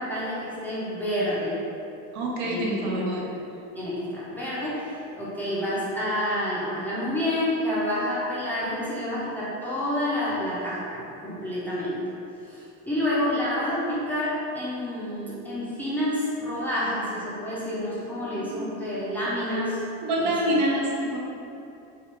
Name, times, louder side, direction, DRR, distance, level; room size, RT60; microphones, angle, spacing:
voice 1, 0.0-1.6 2.4-2.9 3.7-12.0 12.4-19.8 20.2-20.6, left 1 dB, 5° left, -10 dB, 0.4 m, -29 dB
voice 2, 2.1-3.3 18.5-18.6 19.5-19.6 20.0-21.2, right 1 dB, 65° right, -3 dB, 0.6 m, -26 dB
3.3 x 2.3 x 2.9 m, 2.7 s
cardioid pair, 155°, 31 cm